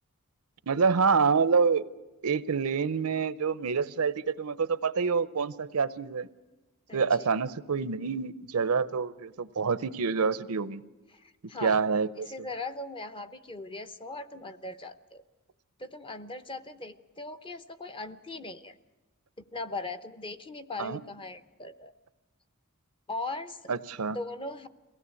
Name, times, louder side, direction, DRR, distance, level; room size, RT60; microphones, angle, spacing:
voice 1, 0.7-1.8 2.2-6.3 6.9-10.8 11.6-12.3 20.8-21.0 23.7-24.2, right 5 dB, 75° right, 16 dB, 0.7 m, -27 dB
voice 2, 11.1-11.8 12.3-15.2 15.8-18.7 19.5-21.9 23.1-23.6 24.1-24.7, left 2 dB, 25° left, 10 dB, 0.8 m, -39 dB
22.5 x 17.0 x 8.3 m, 1.2 s
head